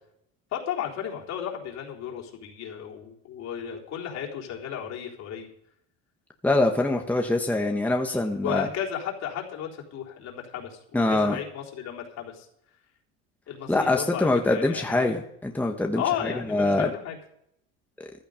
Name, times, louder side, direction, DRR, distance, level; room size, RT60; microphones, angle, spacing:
voice 1, 0.5-5.5 8.0-12.5 13.5-15.2 16.0-17.2, left 9 dB, 60° left, -1 dB, 3.8 m, -34 dB
voice 2, 6.4-8.7 10.9-11.4 13.7-16.0 16.5-16.9, left 2 dB, 5° left, 2 dB, 1.3 m, -24 dB
15.0 x 12.0 x 5.1 m, 0.74 s
cardioid pair, 115°, 31 cm